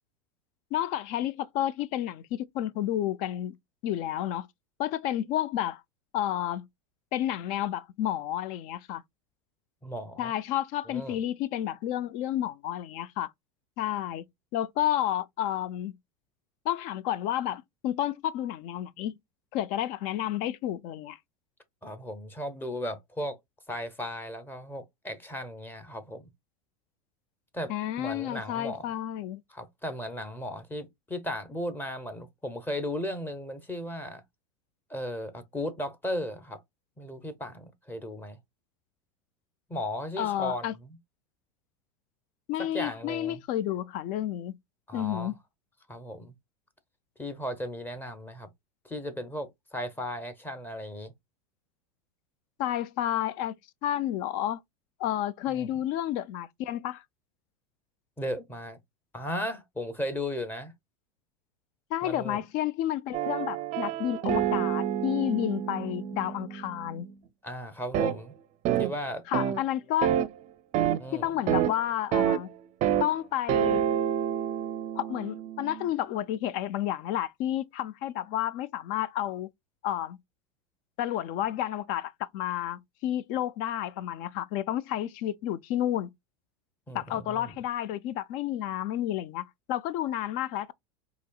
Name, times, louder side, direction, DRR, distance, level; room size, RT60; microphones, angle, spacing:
voice 1, 0.7-3.6 3.8-4.5 4.8-5.8 6.1-6.7 7.1-9.0 10.2-13.3 13.8-14.2 14.5-15.9 16.6-19.1 19.5-21.2 27.7-29.4 40.2-40.7 42.5-44.5 44.9-45.3 52.6-53.5 53.8-54.6 55.0-57.0 61.9-67.1 69.3-70.2 71.1-72.5 73.0-73.8 75.0-79.5 79.8-80.2 81.0-86.1 86.9-90.7, left 12 dB, 50° left, 0.4 m, -31 dB
voice 2, 9.8-10.3 10.9-11.2 21.8-23.4 23.7-26.3 27.5-27.7 28.0-28.9 29.5-34.2 34.9-36.6 37.0-38.4 39.7-41.0 42.6-43.4 44.9-45.3 45.9-46.3 47.2-48.5 48.8-51.1 55.5-55.7 58.2-58.8 59.1-60.7 62.0-62.4 67.4-68.3 68.8-69.2 71.0-71.3 86.9-87.5, left 1 dB, 10° left, 0.8 m, -36 dB
sound 1, 63.1-67.1 67.9-68.1 68.6-68.9 69.3-69.6 70.0-70.3 70.7-71.0 71.5-71.7 72.1-72.4 72.8-73.1 73.5-75.9, right 10 dB, 40° right, 0.5 m, -28 dB
4.1 x 2.9 x 2.3 m
hypercardioid pair, 105°, 18 cm